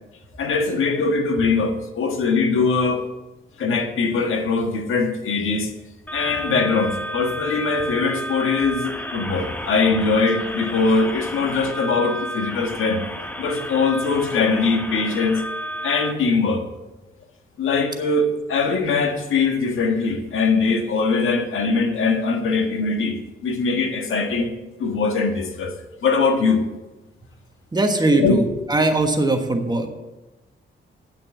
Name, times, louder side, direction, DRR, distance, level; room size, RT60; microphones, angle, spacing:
voice 1, 0.4-3.0 3.6-5.7 6.1-13.0 13.4-15.4 15.8-16.6 17.6-23.2 23.4-24.5 24.8-25.7 26.0-26.6 28.1-28.3, left 4 dB, 85° left, 5 dB, 1.5 m, -21 dB
sound 1, 6.1-16.1, equal, 10° left, 0.8 m, -32 dB
voice 2, 27.7-28.4 28.7-29.9, right 2 dB, 20° right, 5 dB, 1.3 m, -20 dB
9.0 x 6.5 x 8.3 m, 1.1 s
wide cardioid pair, 125°, 20 cm